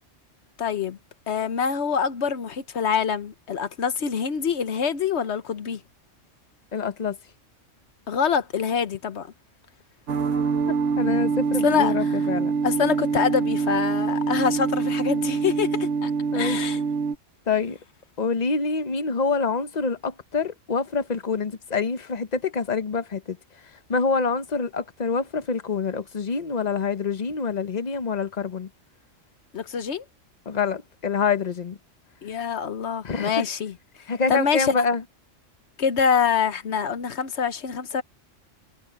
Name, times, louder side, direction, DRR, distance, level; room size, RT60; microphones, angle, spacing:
voice 1, 0.6-1.0 1.3-5.8 8.1-9.3 11.6-12.2 12.6-16.8 29.5-30.0 32.2-34.8 35.8-38.0, left 6 dB, 65° left, 1.3 m, -25 dB
voice 2, 6.7-7.2 10.9-12.5 16.3-16.6 17.5-17.8 18.2-23.4 23.9-28.7 30.5-31.8 33.0-33.4 34.1-35.0, left 5 dB, 35° left, 1.1 m, -26 dB
sound 1, 10.1-17.2, right 5 dB, 75° right, 1.4 m, -25 dB
omnidirectional pair, 1.3 m